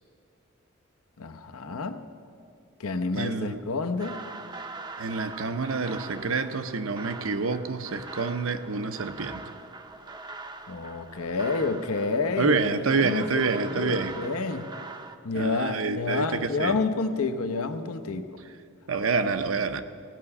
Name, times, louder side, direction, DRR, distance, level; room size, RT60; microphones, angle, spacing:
voice 1, 1.2-2.0 2.8-4.2 10.7-14.7 15.2-18.3, left 3 dB, 90° left, 7 dB, 0.8 m, -29 dB
voice 2, 3.1-3.6 5.0-9.4 12.4-14.2 15.3-16.8 18.9-19.8, right 4 dB, 65° right, 9 dB, 0.7 m, -27 dB
sound 1, 4.0-15.2, right 3 dB, 20° right, 0.5 m, -42 dB
17.0 x 5.7 x 9.7 m, 2.3 s
head